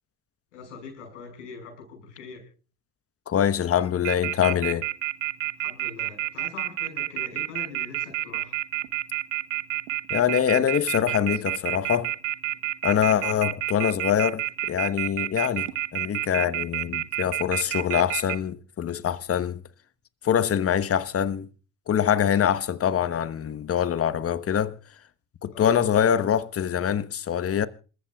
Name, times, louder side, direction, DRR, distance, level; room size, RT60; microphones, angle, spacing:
voice 1, 0.5-2.4 5.6-8.6 12.9-13.3 25.5-25.8, left 5 dB, 90° left, 6.2 m, -42 dB
voice 2, 3.3-4.9 10.1-12.1 12.8-19.6 20.2-21.5 21.9-24.8 25.4-27.7, left 9 dB, 40° left, 1.2 m, -24 dB
Telephone, 4.0-18.3, right 18 dB, 85° right, 0.8 m, -28 dB
27.5 x 14.5 x 2.4 m
hypercardioid pair, 60°, 36 cm